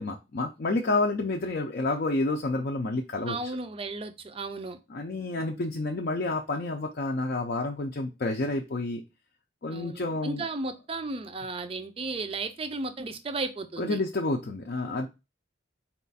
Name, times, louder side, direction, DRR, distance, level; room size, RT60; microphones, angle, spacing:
voice 1, 0.0-3.5 4.9-9.0 9.6-10.4 13.8-15.1, left 2 dB, 50° left, 2 dB, 0.5 m, -29 dB
voice 2, 3.3-4.8 9.7-14.0, right 3 dB, 30° right, 9 dB, 0.4 m, -34 dB
4.2 x 2.3 x 4.0 m, 0.26 s
head